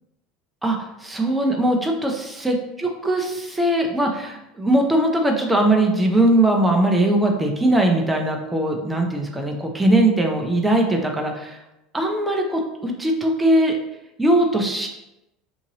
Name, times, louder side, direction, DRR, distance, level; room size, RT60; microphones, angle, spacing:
voice 1, 0.6-11.6 11.9-13.8 14.2-14.9, right 1 dB, 10° right, 1 dB, 0.5 m, -20 dB
2.8 x 2.6 x 2.7 m, 0.90 s
hypercardioid pair, 80°, 0 cm